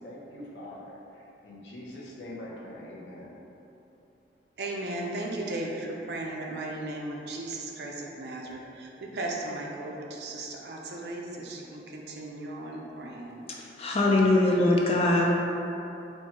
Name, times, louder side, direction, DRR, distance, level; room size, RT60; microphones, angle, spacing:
voice 1, 0.0-3.4, left 1 dB, 75° left, -4 dB, 0.8 m, -43 dB
voice 2, 4.6-13.4, right 2 dB, 65° right, -1 dB, 0.5 m, -36 dB
voice 3, 13.5-15.3, left 2 dB, 35° left, -2 dB, 0.5 m, -22 dB
4.4 x 2.2 x 4.4 m, 3.0 s
head